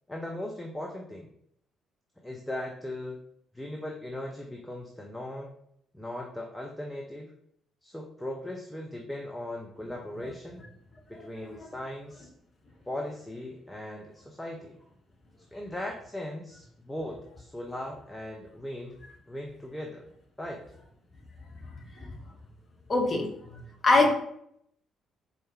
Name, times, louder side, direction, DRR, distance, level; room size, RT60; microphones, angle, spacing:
voice 1, 0.1-1.3 2.2-3.2 3.5-5.6 5.9-7.3 7.8-10.6 11.1-12.3 12.9-14.8 15.4-19.0 19.3-20.0 20.4-20.6, left 1 dB, 10° left, 0 dB, 0.6 m, -38 dB
voice 2, 11.1-11.7 22.0-22.1 22.9-24.1, left 2 dB, 30° left, 1 dB, 1.1 m, -25 dB
4.2 x 3.3 x 3.5 m, 0.70 s
figure-of-eight pair, 45°, 0 cm